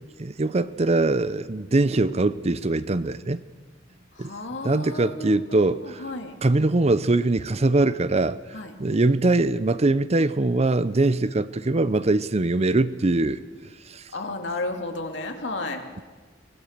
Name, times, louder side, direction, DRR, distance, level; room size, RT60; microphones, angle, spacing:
voice 1, 0.2-3.4 4.2-4.3 4.6-6.0 6.4-8.4 8.8-13.4 13.9-14.1, right 2 dB, 35° right, 0.6 m, -22 dB
voice 2, 4.1-6.4 8.5-8.7 14.1-15.9, left 2 dB, 70° left, 2.6 m, -33 dB
24.0 x 19.0 x 6.7 m
head